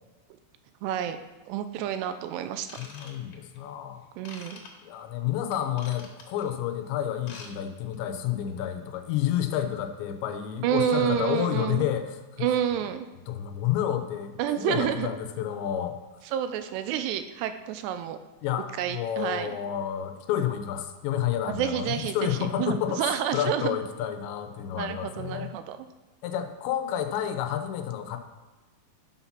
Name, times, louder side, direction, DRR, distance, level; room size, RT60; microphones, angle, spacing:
voice 1, 0.8-1.2 1.5-2.8 4.2-4.6 10.6-11.8 12.4-13.1 14.4-15.1 16.3-18.2 18.8-19.6 21.5-23.8 24.8-25.8, right 10 dB, 85° right, 10 dB, 2.6 m, -29 dB
Ratchet pawl / Tools, 2.6-3.6 4.2-4.7 5.5-6.4 7.1-7.5 7.8-8.0 8.5-8.6, left 4 dB, 65° left, 2.8 m, -45 dB
voice 2, 2.8-4.1 4.8-12.5 13.3-16.0 18.4-25.5 26.2-28.2, left 10 dB, 85° left, 6 dB, 3.0 m, -30 dB
8.9 x 5.8 x 5.8 m, 1.2 s
omnidirectional pair, 5.0 m